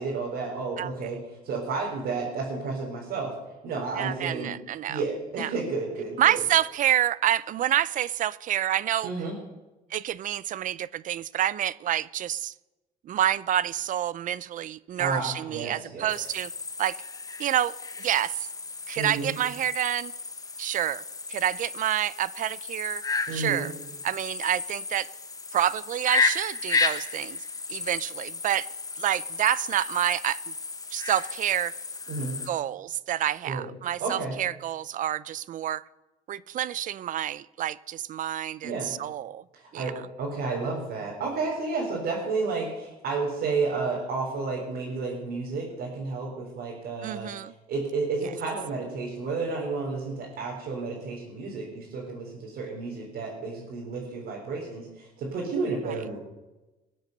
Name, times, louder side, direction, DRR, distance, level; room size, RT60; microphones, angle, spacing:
voice 1, 0.0-3.3 3.6-4.5 4.9-6.4 9.0-9.3 15.0-16.1 19.0-19.3 23.3-23.7 32.1-32.4 33.4-33.7 34.0-34.3 38.6-38.9 39.5-56.2, right 4 dB, 70° right, 4.2 m, -31 dB
voice 2, 4.0-5.0 5.4-5.5 6.2-9.1 9.9-12.5 13.1-16.5 16.8-17.0 17.4-17.7 18.0-18.5 18.9-20.1 20.6-21.0 21.3-23.0 23.3-23.7 24.0-25.1 25.5-27.4 27.7-28.7 29.0-30.4 30.9-31.7 32.5-35.8 36.3-39.4 39.7-39.9 47.0-47.5, right 11 dB, 50° right, 0.5 m, -28 dB
sound 1, 16.1-32.5, left 4 dB, 20° left, 1.0 m, -33 dB
21.0 x 7.9 x 6.7 m
cardioid pair, 110°, 17 cm